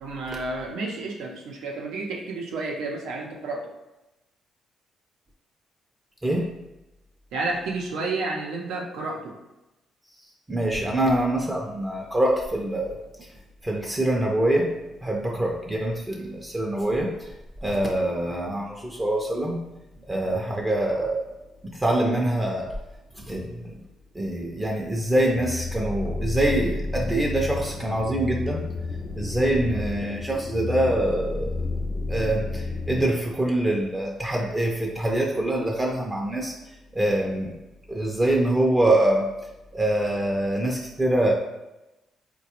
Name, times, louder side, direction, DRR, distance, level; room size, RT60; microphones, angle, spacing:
voice 1, 0.0-3.6 7.3-9.3, right 3 dB, 90° right, 0 dB, 0.6 m, -31 dB
voice 2, 10.5-13.3 13.6-14.7 15.0-17.3 17.6-19.6 20.1-21.2 21.6-22.8 23.1-23.8 24.1-28.7 29.2-31.6 32.1-36.5 36.9-37.6 37.9-39.3 39.7-41.3, right 1 dB, 15° right, 0 dB, 0.4 m, -24 dB
sound 1, 25.3-33.1, left 3 dB, 40° left, 0.4 m, -31 dB
4.0 x 2.2 x 2.9 m, 0.98 s
cardioid pair, 90°, 0 cm